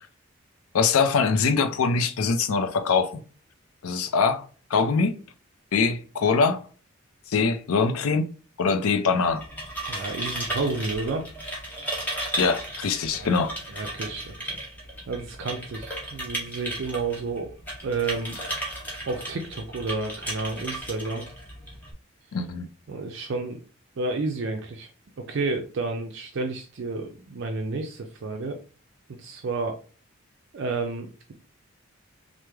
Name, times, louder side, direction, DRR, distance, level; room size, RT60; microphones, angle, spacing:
voice 1, 0.7-3.2 3.8-5.2 5.7-6.6 7.3-8.3 8.6-9.4 12.4-13.6 22.3-22.6, left 5 dB, 85° left, 0.5 m, -23 dB
sound 1, 9.2-21.9, right 1 dB, 10° left, 0.8 m, -35 dB
voice 2, 9.9-11.3 13.1-13.3 13.7-14.5 15.1-17.5 17.8-18.4 19.1-21.3 22.9-23.6 24.0-24.9 25.2-28.6 29.1-29.8 30.5-31.3, right 3 dB, 55° right, 0.4 m, -31 dB
3.1 x 2.0 x 3.3 m
head